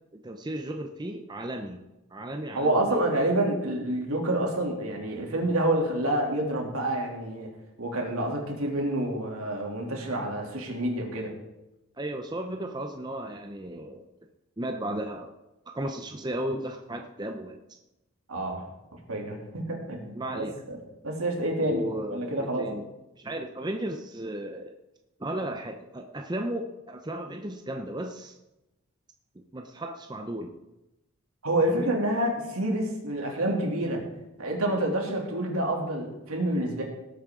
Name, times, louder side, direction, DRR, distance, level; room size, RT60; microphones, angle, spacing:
voice 1, 0.2-1.8 2.1-2.8 12.0-14.1 14.6-15.3 15.7-17.6 20.2-20.5 21.6-22.9 23.1-24.8 25.2-28.4 29.3-30.6 31.6-31.9, right 1 dB, 20° right, 4 dB, 0.7 m, -35 dB
voice 2, 2.5-7.5 7.8-11.3 18.3-18.7 19.1-20.8 21.0-21.8 22.1-22.7 31.4-34.0 34.4-36.8, right 1 dB, 80° right, 0 dB, 2.9 m, -28 dB
18.0 x 8.6 x 3.8 m, 0.96 s
head